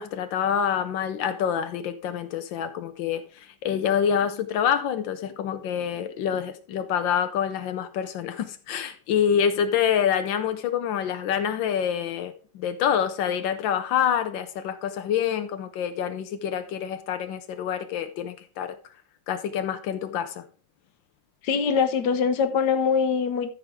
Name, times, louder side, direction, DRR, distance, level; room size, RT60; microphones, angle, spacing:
voice 1, 0.0-18.8 19.3-20.4, left 8 dB, 85° left, 1.5 m, -26 dB
voice 2, 21.4-23.5, left 6 dB, 65° left, 1.4 m, -23 dB
13.5 x 4.9 x 3.5 m
omnidirectional pair, 2.0 m